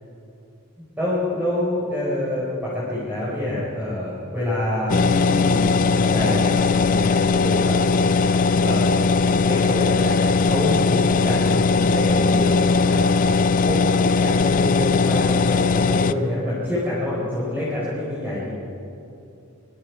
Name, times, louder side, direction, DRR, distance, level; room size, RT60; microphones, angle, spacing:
voice 1, 0.8-7.8 8.6-9.1 9.4-13.0 13.6-13.8 14.2-18.5, left 1 dB, 10° right, -9 dB, 4.9 m, -26 dB
sound 1, 4.9-16.1, left 4 dB, 35° left, 0.5 m, -19 dB
24.0 x 23.5 x 4.8 m, 2.7 s
head